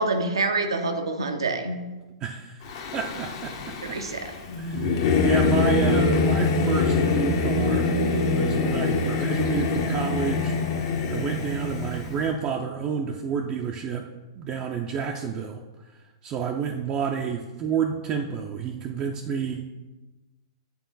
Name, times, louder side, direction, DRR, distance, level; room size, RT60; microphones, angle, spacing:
voice 1, 0.0-1.8 3.8-4.3, right 3 dB, 80° right, 5 dB, 0.7 m, -26 dB
voice 2, 2.2-4.0 4.6-10.6 11.1-14.1 14.4-15.6 16.2-19.7, right 6 dB, 30° right, 1 dB, 0.5 m, -30 dB
Singing / Musical instrument, 2.6-12.2, left 3 dB, 50° left, 0.9 m, -24 dB
8.3 x 3.7 x 4.0 m, 1.1 s
figure-of-eight pair, 110°, 3 cm